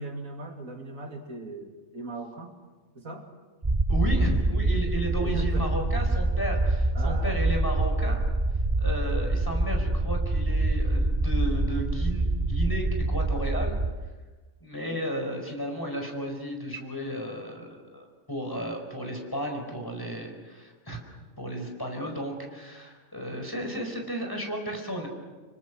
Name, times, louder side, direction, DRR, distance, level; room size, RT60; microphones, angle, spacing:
voice 1, 0.0-2.6 2.9-3.3 5.2-5.9 6.9-7.4 14.8-15.0, right 2 dB, 90° right, 3 dB, 3.0 m, -38 dB
sound 1, 3.6-13.9, right 2 dB, 20° right, 0.7 m, -25 dB
voice 2, 3.9-8.2 8.8-13.7 14.6-21.0 21.4-25.1, equal, 15° left, 3 dB, 4.9 m, -33 dB
26.5 x 24.5 x 6.3 m, 1.3 s
omnidirectional pair, 1.4 m